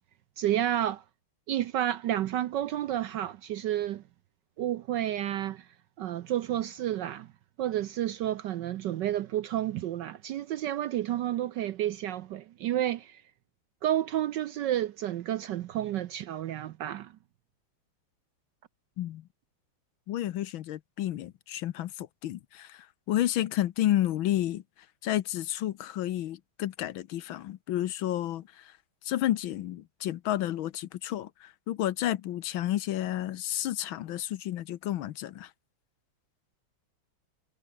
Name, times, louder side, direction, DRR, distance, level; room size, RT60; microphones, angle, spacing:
voice 1, 0.4-1.0 1.5-4.0 4.6-5.7 6.0-7.3 7.6-13.2 13.8-17.1, right 12 dB, 70° right, 1.1 m, -30 dB
voice 2, 20.1-24.6 25.0-28.7 29.0-35.5, left 13 dB, 70° left, 1.5 m, -31 dB
omnidirectional pair, 2.4 m